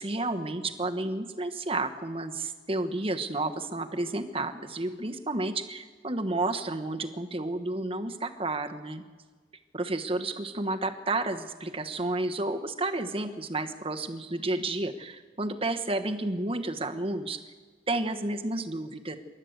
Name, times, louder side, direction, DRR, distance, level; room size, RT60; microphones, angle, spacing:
voice 1, 0.0-9.0 9.7-17.4 17.9-19.2, right 2 dB, 30° right, 7 dB, 1.2 m, -31 dB
28.0 x 12.0 x 8.1 m, 1.4 s
head